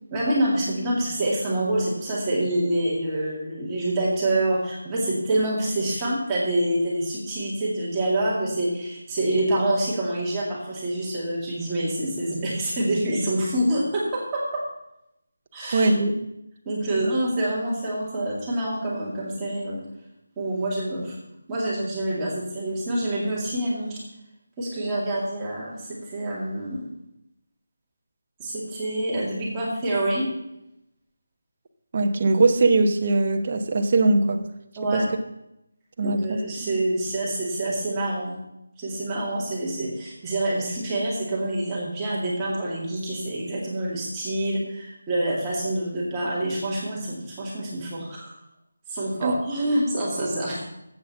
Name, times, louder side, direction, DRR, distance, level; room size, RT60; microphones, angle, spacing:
voice 1, 0.1-14.7 15.5-15.9 16.7-19.8 20.4-21.2 21.5-24.0 24.6-26.8 28.4-30.3 34.8-35.1 36.0-38.4 38.8-48.3 48.9-50.6, right 1 dB, 10° right, -6 dB, 2.2 m, -26 dB
voice 2, 15.7-16.2 16.9-17.1 31.9-34.4 34.9-35.0 36.0-36.8 49.2-49.3, right 3 dB, 35° right, 5 dB, 1.0 m, -21 dB
8.1 x 7.4 x 7.2 m, 0.85 s
figure-of-eight pair, 170°, 0 cm